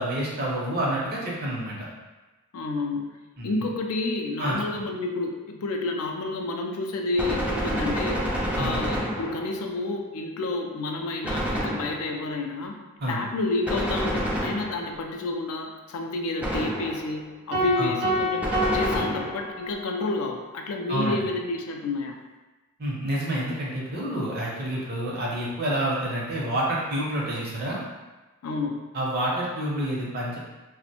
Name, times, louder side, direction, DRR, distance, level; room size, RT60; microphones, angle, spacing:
voice 1, 0.0-1.8 3.4-3.6 4.4-4.6 8.6-8.8 13.0-13.2 17.8-17.9 20.9-21.2 22.8-27.8 28.9-30.4, right 1 dB, 45° right, -4 dB, 0.6 m, -28 dB
voice 2, 2.5-8.2 8.5-12.7 13.1-22.2 28.4-28.8, left 2 dB, 75° left, 2 dB, 0.4 m, -30 dB
Gunshot gunfire, 7.2-9.7 11.2-12.3 13.6-15.1 16.4-17.2 18.4-19.6, equal, 5° right, 0.3 m, -29 dB
sound 1, 17.5-20.0, equal, 80° right, 0.7 m, -27 dB
2.5 x 2.1 x 2.8 m, 1.2 s
head